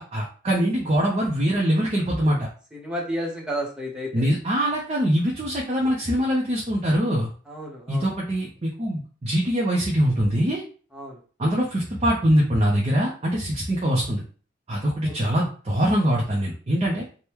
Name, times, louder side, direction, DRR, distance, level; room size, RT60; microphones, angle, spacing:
voice 1, 0.0-2.5 4.1-7.3 7.9-10.6 11.4-14.2 14.7-17.0, equal, 30° right, -3 dB, 0.5 m, -23 dB
voice 2, 2.7-4.1 7.5-8.1 10.9-11.2 13.9-14.0 15.0-15.1, equal, 5° right, -3 dB, 0.8 m, -31 dB
3.4 x 2.2 x 2.9 m, 0.39 s
head